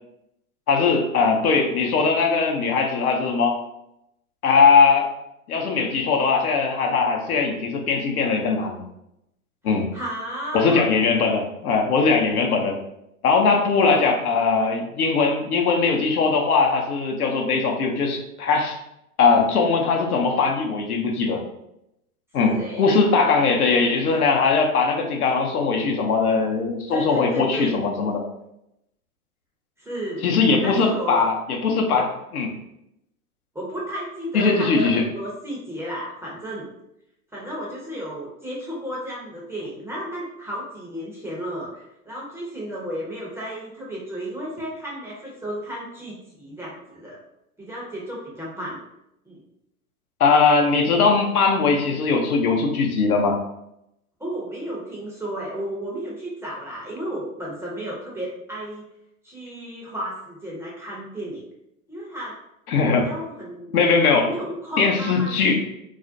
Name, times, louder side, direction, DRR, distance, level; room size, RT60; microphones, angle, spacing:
voice 1, 0.7-3.5 4.4-5.1 5.5-8.8 9.6-9.9 10.5-12.8 13.2-18.8 19.2-21.4 22.3-28.2 30.2-32.5 34.3-35.0 50.2-53.4 62.7-63.1 63.7-64.3 64.8-65.6, left 4 dB, 80° left, 1 dB, 0.7 m, -20 dB
voice 2, 9.9-10.8 13.8-14.1 22.4-22.9 24.1-24.2 26.9-27.7 29.8-30.2 30.6-31.3 33.5-36.7 37.3-47.2 47.6-48.8 49.3-49.4 54.2-58.8 59.2-61.4 61.9-62.4 63.0-63.7 64.1-65.6, right 1 dB, 5° right, -5 dB, 0.5 m, -33 dB
2.4 x 2.0 x 2.5 m, 0.82 s
hypercardioid pair, 100°, 44 cm